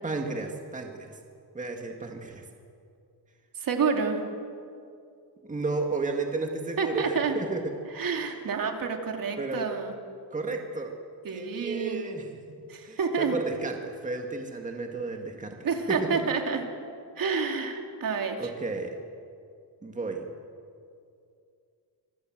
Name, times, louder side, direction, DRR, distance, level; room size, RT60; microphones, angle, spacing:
voice 1, 0.0-1.2 1.5-2.4 5.4-7.7 8.2-8.3 9.4-9.7 10.3-11.0 11.3-12.3 12.8-15.6 15.9-16.2 18.4-19.0 19.8-20.3, right 3 dB, 20° right, 3 dB, 1.9 m, -33 dB
voice 2, 3.6-4.2 6.8-7.3 7.9-9.9 11.2-12.0 12.7-13.4 15.6-16.6 17.2-18.5, right 5 dB, 55° right, 3 dB, 2.9 m, -28 dB
25.5 x 24.0 x 7.6 m, 2.4 s
cardioid pair, 150°, 41 cm